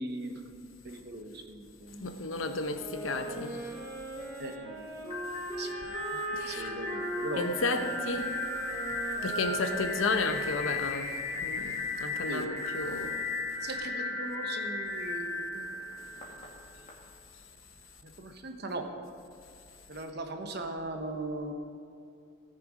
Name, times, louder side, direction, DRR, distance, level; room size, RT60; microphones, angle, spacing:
voice 1, 0.0-2.1 4.4-4.8 5.6-5.7 6.1-8.3 12.3-12.5 13.6-15.7 18.0-18.9 19.9-21.5, right 2 dB, 55° right, 5 dB, 1.1 m, -39 dB
voice 2, 2.0-3.6 6.3-6.8 7.4-8.3 9.2-11.1 11.4-13.1, left 3 dB, 80° left, 7 dB, 0.9 m, -32 dB
sound 1, 2.7-10.6, right 1 dB, 20° right, 3.2 m, -40 dB
sound 2, 5.1-16.9, left 2 dB, 35° left, 2.2 m, -36 dB
18.0 x 6.7 x 5.1 m, 2.5 s
head